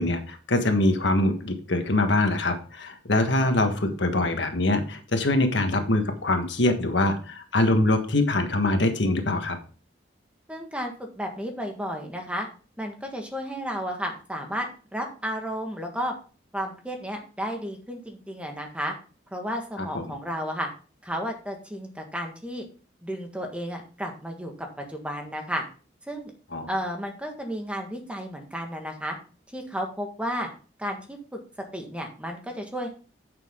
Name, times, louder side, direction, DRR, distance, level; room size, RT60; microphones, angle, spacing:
voice 1, 0.0-9.6 19.8-20.1 26.5-26.7, left 2 dB, 70° left, 6 dB, 1.5 m, -24 dB
voice 2, 10.5-12.5 12.8-14.7 14.9-16.1 16.5-18.9 19.3-20.7 21.0-22.6 23.0-24.5 24.8-25.6 26.1-26.3 26.7-29.2 29.5-30.5 30.8-31.4 31.7-32.9, equal, 5° right, 3 dB, 1.5 m, -32 dB
9.8 x 6.8 x 3.7 m, 0.38 s
head